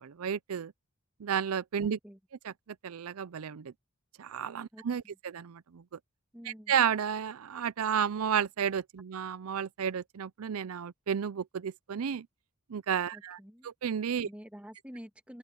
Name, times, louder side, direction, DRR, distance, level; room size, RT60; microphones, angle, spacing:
voice 1, 0.0-0.7 1.2-2.0 2.4-2.5 2.8-3.7 4.2-5.8 6.5-12.3 12.7-13.4 13.6-14.3, right 8 dB, 85° right, 0.5 m, -32 dB
voice 2, 1.8-2.2 4.7-5.2 6.3-6.7 13.1-13.7 14.2-15.4, equal, 5° right, 2.0 m, -49 dB
open air
head